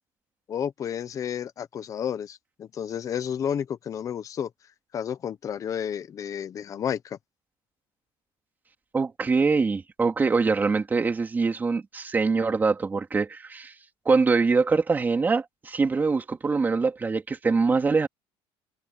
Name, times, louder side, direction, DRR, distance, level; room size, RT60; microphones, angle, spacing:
voice 1, 0.5-4.5 4.9-7.2, left 8 dB, 30° left, 1.0 m, -31 dB
voice 2, 8.9-13.7 14.0-18.1, right 4 dB, 15° right, 3.1 m, -23 dB
cardioid pair, 165°, 11 cm